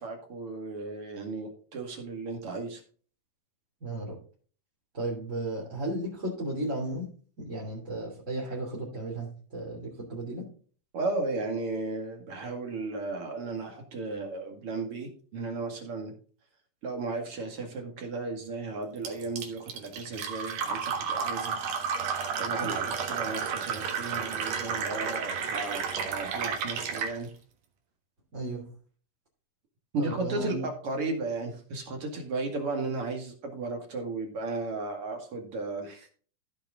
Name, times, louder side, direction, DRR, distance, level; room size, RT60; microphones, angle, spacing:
voice 1, 0.0-2.8 10.9-16.1 16.8-21.6 22.4-27.3 29.9-36.1, right 3 dB, 45° right, 3 dB, 2.7 m, -35 dB
voice 2, 3.8-4.2 4.9-7.1 7.4-10.4 22.6-22.7 28.3-28.7 30.0-30.7, right 1 dB, 25° right, -5 dB, 2.9 m, -34 dB
Fill (with liquid), 19.0-27.2, right 6 dB, 70° right, 3.0 m, -32 dB
15.0 x 5.7 x 3.7 m, 0.42 s
omnidirectional pair, 3.9 m